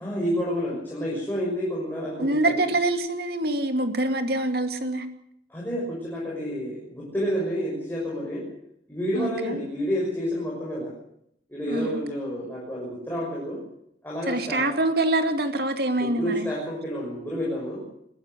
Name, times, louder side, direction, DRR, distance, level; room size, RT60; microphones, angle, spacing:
voice 1, 0.0-2.6 5.5-8.5 8.9-10.9 11.5-13.6 14.0-14.7 16.0-17.8, equal, 10° left, -5 dB, 6.3 m, -29 dB
voice 2, 2.2-5.1 9.1-9.6 11.7-11.9 14.3-16.5, right 2 dB, 60° right, 7 dB, 2.5 m, -25 dB
21.5 x 15.5 x 8.1 m, 0.73 s
head